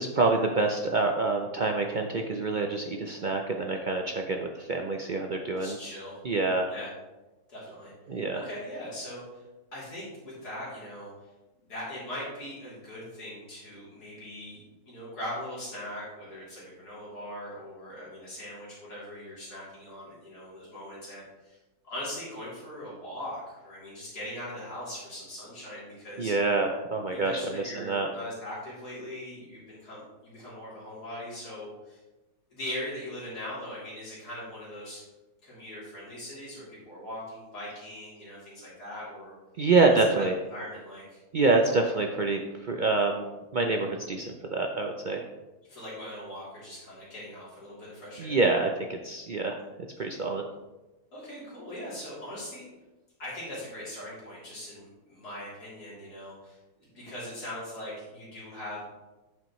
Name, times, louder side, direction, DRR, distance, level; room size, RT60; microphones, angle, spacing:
voice 1, 0.0-5.8 6.2-6.7 8.1-8.5 26.2-28.1 39.6-40.3 41.3-43.2 43.5-45.3 48.2-49.6 50.0-50.4, right 3 dB, 70° right, 2 dB, 0.4 m, -26 dB
voice 2, 5.6-6.2 6.7-6.9 7.5-7.9 8.3-9.4 9.7-11.1 11.7-21.6 21.8-26.3 27.1-32.0 32.5-35.0 35.4-39.4 39.9-40.2 40.5-41.0 45.7-48.4 51.1-52.7 53.2-56.6 56.9-58.8, left 1 dB, 85° left, -8 dB, 3.7 m, -40 dB
8.9 x 7.4 x 3.1 m, 1.1 s
omnidirectional pair, 1.6 m